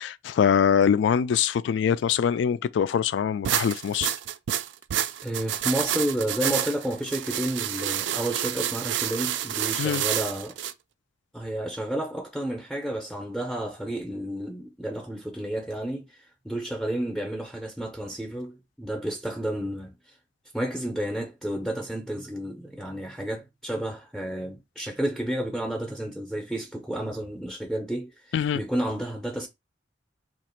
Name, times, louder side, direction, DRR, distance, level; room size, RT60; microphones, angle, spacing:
voice 1, 0.0-4.1 9.8-10.0 28.3-28.6, left 7 dB, 80° left, 0.3 m, -23 dB
sound 1, 3.4-10.7, right 11 dB, 70° right, 0.3 m, -29 dB
voice 2, 5.2-10.6 11.3-19.9 20.5-29.5, right 1 dB, ahead, 0.5 m, -31 dB
2.9 x 2.5 x 4.3 m
head